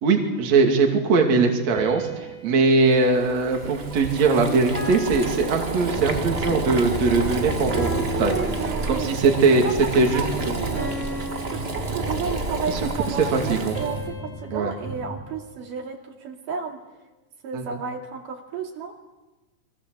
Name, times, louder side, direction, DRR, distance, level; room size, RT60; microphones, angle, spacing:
voice 1, 0.0-7.9 8.2-8.4 8.9-9.7 9.9-10.5 12.7-12.8 13.1-13.8 14.5-14.7 17.5-17.7, right 4 dB, 55° right, 3 dB, 3.6 m, -21 dB
sound 1, 1.8-4.2 4.8-6.5 7.8-9.3 10.8-12.6 13.8-16.1, right 2 dB, 35° left, 8.0 m, -36 dB
Boiling, 2.8-14.1, right 2 dB, 25° right, 1.5 m, -30 dB
sound 2, 5.9-15.2, right 1 dB, 75° left, 6.1 m, -36 dB
voice 2, 7.7-11.0 11.5-16.8 17.4-19.0, right 6 dB, 75° right, 2 dB, 4.1 m, -32 dB
29.0 x 23.5 x 7.9 m, 1.1 s
omnidirectional pair, 3.8 m